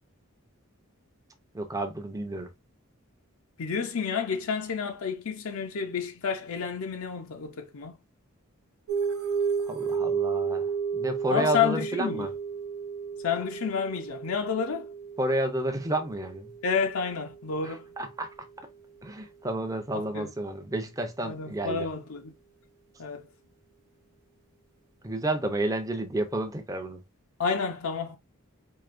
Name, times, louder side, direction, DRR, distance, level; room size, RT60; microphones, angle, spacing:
voice 1, 1.5-2.5 9.7-12.3 15.2-16.5 17.6-18.3 19.0-21.9 25.0-27.0, right 1 dB, 15° right, 0.6 m, -31 dB
voice 2, 3.6-8.0 11.3-12.3 13.2-14.9 16.6-17.9 19.9-20.3 21.2-22.3 23.0-23.3 27.4-28.2, left 6 dB, 75° left, 0.6 m, -30 dB
sound 1, 8.9-17.8, right 6 dB, 85° right, 0.7 m, -33 dB
4.8 x 2.7 x 2.5 m
head